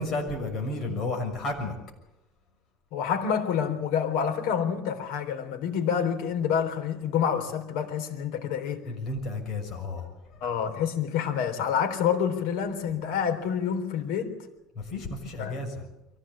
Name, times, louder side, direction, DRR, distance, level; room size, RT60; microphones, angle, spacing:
voice 1, 0.0-1.7 8.8-10.1 14.7-15.8, left 2 dB, 40° left, 3 dB, 6.5 m, -32 dB
voice 2, 2.9-8.9 10.4-14.4 15.4-15.6, left 7 dB, 80° left, 6 dB, 3.8 m, -28 dB
23.5 x 16.5 x 8.7 m, 0.90 s
cardioid pair, 145°, 0 cm